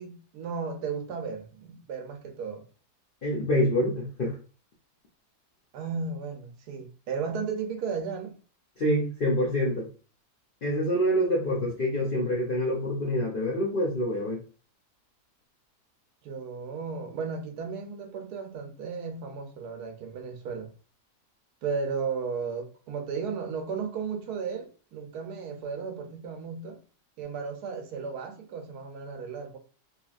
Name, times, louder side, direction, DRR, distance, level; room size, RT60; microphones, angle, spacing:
voice 1, 0.0-2.6 5.7-8.4 16.2-20.7 21.6-26.8 27.2-29.6, right 5 dB, 75° right, 1.2 m, -34 dB
voice 2, 3.2-4.3 8.8-9.9 10.6-14.4, equal, 65° left, 0.5 m, -26 dB
2.8 x 2.8 x 2.4 m
omnidirectional pair, 1.7 m